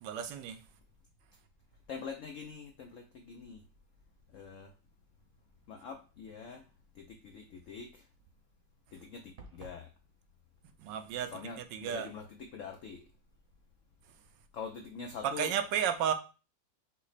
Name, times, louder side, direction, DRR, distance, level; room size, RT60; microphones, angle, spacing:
voice 1, 0.0-0.6 10.8-12.1 15.2-16.1, right 8 dB, 80° right, 1.2 m, -33 dB
voice 2, 1.9-3.6 4.3-4.7 5.7-6.6 7.0-8.0 8.9-9.2 9.5-9.9 11.3-13.0 14.5-15.5, left 6 dB, 85° left, 0.7 m, -44 dB
sound 1, 9.4-9.9, right 3 dB, 55° right, 1.2 m, -50 dB
6.0 x 2.1 x 4.0 m
omnidirectional pair, 2.0 m